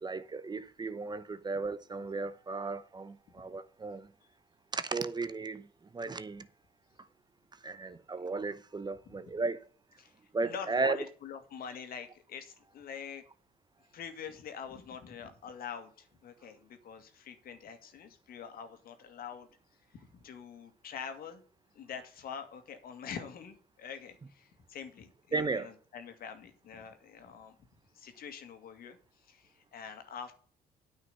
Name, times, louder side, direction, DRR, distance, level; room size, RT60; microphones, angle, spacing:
voice 1, 0.0-4.1 4.7-5.7 5.9-6.5 7.6-9.6 10.3-11.0 25.3-25.7, right 3 dB, 25° right, 0.9 m, -35 dB
voice 2, 10.4-13.2 13.9-19.5 19.9-21.4 21.7-27.6 27.9-30.3, left 7 dB, 60° left, 2.1 m, -45 dB
9.4 x 5.6 x 6.8 m
supercardioid pair, 85°, 17 cm